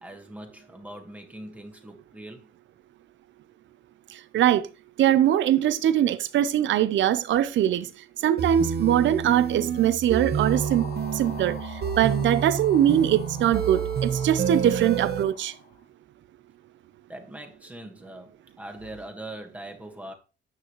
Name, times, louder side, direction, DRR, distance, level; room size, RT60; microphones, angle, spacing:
voice 1, 0.0-2.5 13.7-13.8 17.1-20.1, right 1 dB, 5° right, 1.6 m, -42 dB
voice 2, 5.0-7.9 8.2-10.8 11.1-11.6 12.0-15.5, right 11 dB, 70° right, 0.7 m, -22 dB
sound 1, 8.4-15.2, right 7 dB, 55° right, 1.0 m, -28 dB
sound 2, 10.4-15.8, left 6 dB, 60° left, 1.3 m, -44 dB
9.8 x 6.3 x 3.1 m
cardioid pair, 90°, 20 cm